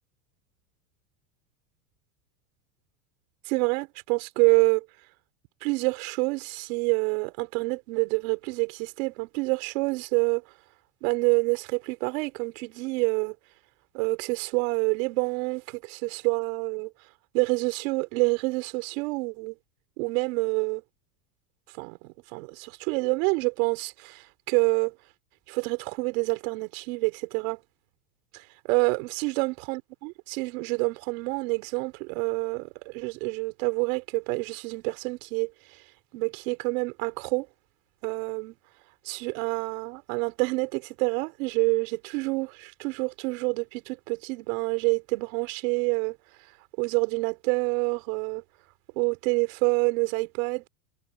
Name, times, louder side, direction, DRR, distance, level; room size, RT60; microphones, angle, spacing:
voice 1, 3.5-4.9 5.6-10.4 11.0-13.4 13.9-16.9 17.3-19.6 20.0-20.8 21.8-24.9 25.5-27.6 28.3-35.8 36.1-37.5 38.0-38.5 39.0-46.2 46.8-48.4 49.0-50.6, right 29 dB, 65° right, 4.2 m, -27 dB
supercardioid pair, 120°, 44 cm